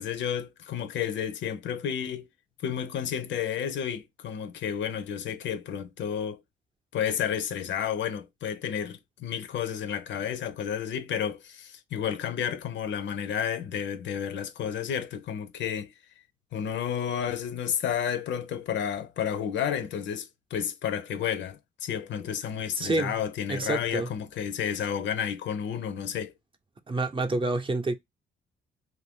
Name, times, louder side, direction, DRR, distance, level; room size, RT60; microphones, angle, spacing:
voice 1, 0.0-2.3 2.6-6.4 6.9-15.9 16.5-26.3, left 8 dB, 70° left, 0.6 m, -31 dB
voice 2, 22.8-23.1 23.5-24.1 26.9-27.9, right 2 dB, 25° right, 0.6 m, -28 dB
2.6 x 2.5 x 3.5 m
cardioid pair, 90°, 20 cm